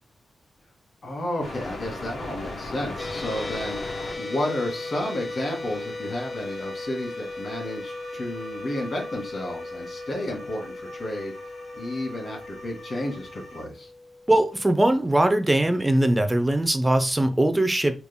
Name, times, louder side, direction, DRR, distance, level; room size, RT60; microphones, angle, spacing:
voice 1, 1.0-3.8 4.2-11.3 11.7-13.9, left 1 dB, 55° left, -1 dB, 1.6 m, -32 dB
sound 1, 1.4-13.6, left 1 dB, 85° left, 0.8 m, -41 dB
sound 2, 3.0-15.3, left 2 dB, 35° left, 0.6 m, -37 dB
voice 2, 14.3-17.9, right 1 dB, 10° right, 8 dB, 0.3 m, -21 dB
3.5 x 2.1 x 3.5 m, 0.35 s
wide cardioid pair, 135°, 0 cm